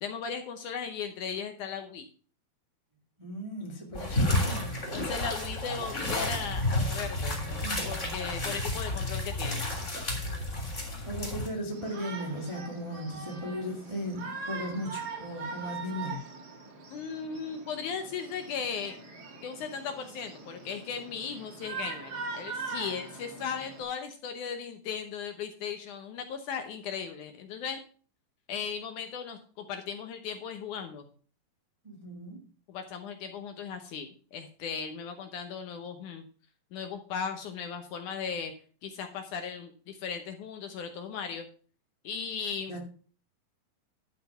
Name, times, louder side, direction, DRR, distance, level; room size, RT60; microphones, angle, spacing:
voice 1, 0.0-2.1 3.6-4.1 4.9-9.6 16.9-19.0 19.4-27.8 28.5-31.1 32.7-36.2 36.7-38.5 38.8-41.5 42.0-42.8, left 6 dB, 70° left, 7 dB, 2.1 m, -37 dB
voice 2, 3.2-4.9 7.6-8.0 11.1-16.2 31.8-32.4 42.7-42.8, equal, 15° right, 0 dB, 1.3 m, -37 dB
sound 1, 3.9-11.5, left 1 dB, 20° left, 3.2 m, -31 dB
Shout, 11.7-23.8, right 4 dB, 50° right, 1.2 m, -42 dB
11.5 x 5.8 x 5.7 m, 0.41 s
omnidirectional pair, 4.2 m